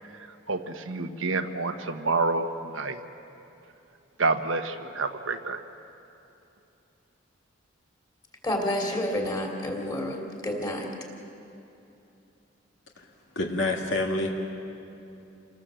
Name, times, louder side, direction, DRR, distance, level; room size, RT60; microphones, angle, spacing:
voice 1, 0.5-3.0 4.2-5.6, right 3 dB, 80° right, 6 dB, 1.2 m, -28 dB
voice 2, 8.4-10.9, left 1 dB, 20° left, 1 dB, 3.1 m, -29 dB
voice 3, 13.4-14.3, left 2 dB, 70° left, 1 dB, 2.2 m, -27 dB
29.0 x 19.5 x 7.7 m, 2.8 s
head